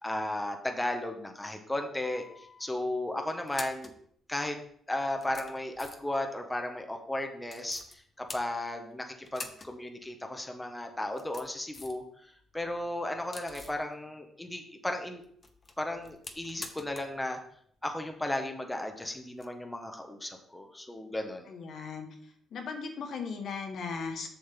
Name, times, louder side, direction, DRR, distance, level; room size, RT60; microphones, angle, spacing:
voice 1, 0.0-3.9 4.3-4.6 4.9-12.0 12.5-15.2 15.8-17.4 17.8-21.5, left 1 dB, 10° left, 4 dB, 1.2 m, -35 dB
sound 1, 2.0-2.6 3.3-4.0 4.7-4.8 5.2-6.2 7.5-7.9 8.3-8.9 9.3-9.7 10.0-10.1 10.9-12.1 12.4-13.8 15.2-17.2 17.4-17.5 19.3-19.5, left 3 dB, 30° left, 1.0 m, -46 dB
voice 2, 21.5-22.1 22.5-24.3, left 5 dB, 65° left, 4 dB, 1.2 m, -37 dB
7.0 x 6.3 x 3.7 m, 0.64 s
cardioid pair, 90°, 0 cm